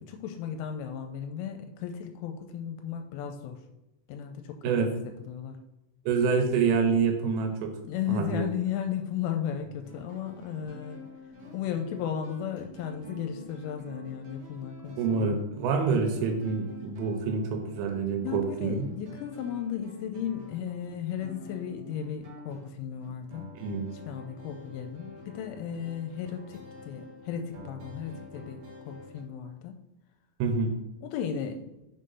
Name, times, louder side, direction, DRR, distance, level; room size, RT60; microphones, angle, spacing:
voice 1, 0.0-3.6 4.1-4.9 5.3-5.6 7.8-11.0 11.5-15.4 18.2-23.6 23.9-29.8 31.0-31.7, left 8 dB, 85° left, 5 dB, 3.0 m, -35 dB
voice 2, 6.1-7.7 8.1-8.5 15.0-18.8 23.6-23.9 30.4-30.8, right 5 dB, 90° right, 4 dB, 3.3 m, -27 dB
sound 1, 9.5-29.2, left 2 dB, 70° right, 1.6 m, -47 dB
6.8 x 3.7 x 5.4 m, 0.94 s
omnidirectional pair, 5.5 m